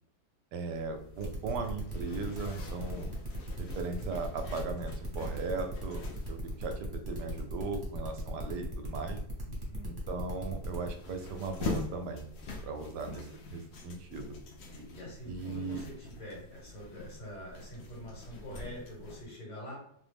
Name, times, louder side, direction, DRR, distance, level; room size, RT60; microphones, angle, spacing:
voice 1, 0.5-3.1 3.6-9.2 9.8-12.3 12.6-14.3 15.3-15.8, right 4 dB, 80° right, 6 dB, 1.2 m, -38 dB
Zipper (clothing), 0.7-19.3, left 3 dB, 90° left, 0.5 m, -45 dB
sound 1, 1.2-10.9, right 2 dB, 20° right, 0.7 m, -41 dB
voice 2, 9.4-10.0 12.8-12.9 14.7-19.8, equal, 75° left, -4 dB, 2.0 m, -45 dB
3.7 x 2.0 x 3.3 m, 0.71 s
omnidirectional pair, 1.8 m